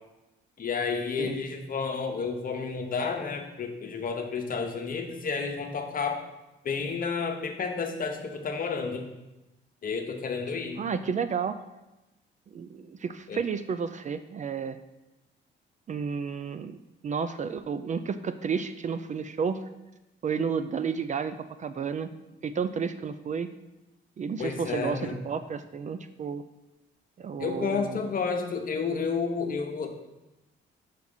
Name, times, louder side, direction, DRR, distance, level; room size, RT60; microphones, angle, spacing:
voice 1, 0.6-6.2 6.6-9.0 9.8-10.8 13.3-13.4 24.4-25.2 27.4-29.9, left 5 dB, 45° left, 4 dB, 1.0 m, -31 dB
voice 2, 10.8-11.6 12.5-14.8 15.9-16.8 17.0-19.6 20.2-22.1 22.4-23.5 24.2-26.4 27.2-28.1, right 6 dB, 40° right, 11 dB, 0.4 m, -31 dB
5.9 x 4.8 x 5.4 m, 1.0 s
cardioid pair, 90°, 20 cm